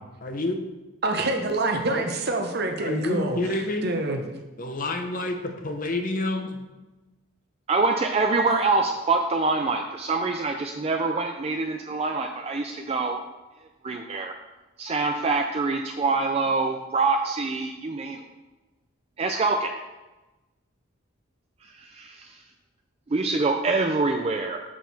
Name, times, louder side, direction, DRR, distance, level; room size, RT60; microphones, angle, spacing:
voice 1, 0.2-0.6 1.9-2.0 2.8-3.9 4.6-6.6, left 2 dB, 40° left, 5 dB, 0.7 m, -29 dB
voice 2, 1.0-4.2, right 2 dB, 50° right, 4 dB, 0.8 m, -26 dB
voice 3, 7.7-13.2 13.8-14.3 14.8-18.2 19.2-19.7 21.6-22.4 23.1-24.6, right 3 dB, 30° right, 4 dB, 0.3 m, -25 dB
6.4 x 6.2 x 4.1 m, 1.1 s
head